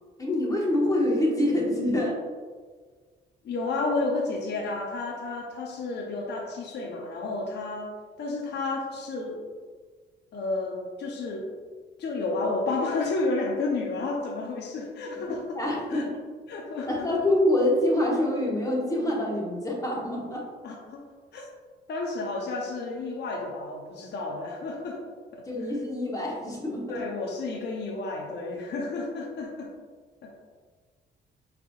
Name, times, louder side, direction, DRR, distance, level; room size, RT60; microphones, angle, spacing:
voice 1, 0.2-2.2 15.5-16.1 16.9-20.5 25.4-27.0, left 1 dB, 15° left, -3 dB, 1.1 m, -26 dB
voice 2, 3.4-9.4 10.3-11.5 12.0-15.6 15.9-16.0 16.5-17.1 20.6-21.0 21.3-21.5 21.9-25.0 25.3-25.5 26.9-29.7 30.2-30.3, left 3 dB, 60° left, 0 dB, 0.6 m, -31 dB
4.7 x 3.5 x 2.3 m, 1.5 s
cardioid pair, 90°, 20 cm